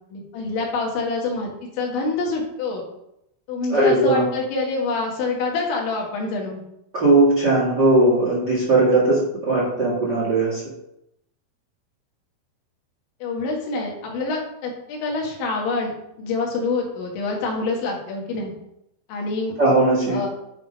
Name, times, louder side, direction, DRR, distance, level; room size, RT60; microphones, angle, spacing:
voice 1, 0.1-2.8 3.5-6.6 13.2-15.9 16.2-18.5 19.1-19.6 20.1-20.3, left 3 dB, 85° left, -1 dB, 4.0 m, -26 dB
voice 2, 3.7-4.2 6.9-10.6 19.6-20.3, right 2 dB, 50° right, -6 dB, 1.3 m, -18 dB
9.8 x 3.7 x 5.2 m, 0.81 s
omnidirectional pair, 5.2 m